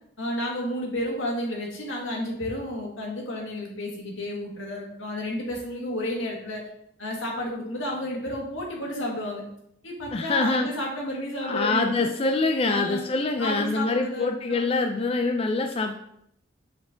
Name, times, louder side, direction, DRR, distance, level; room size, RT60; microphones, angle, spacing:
voice 1, 0.2-6.6 7.0-9.4 9.8-12.0 12.6-13.0 13.4-14.7, left 1 dB, 80° left, -1 dB, 1.9 m, -31 dB
voice 2, 10.1-10.7 11.4-15.9, left 3 dB, 30° left, 4 dB, 0.4 m, -25 dB
7.8 x 4.6 x 3.8 m, 0.74 s
head